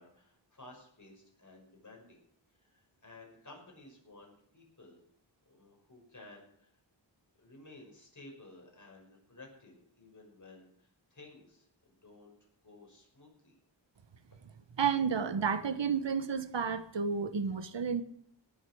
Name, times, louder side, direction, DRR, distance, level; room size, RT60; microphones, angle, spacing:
voice 1, 0.0-2.2 2.6-5.0 5.5-6.7 7.4-12.4 12.6-13.5, left 2 dB, 40° left, 0 dB, 5.8 m, -55 dB
voice 2, 14.8-18.0, right 6 dB, 65° right, 12 dB, 1.3 m, -31 dB
18.5 x 7.9 x 6.3 m, 0.69 s
wide cardioid pair, 100°, 46 cm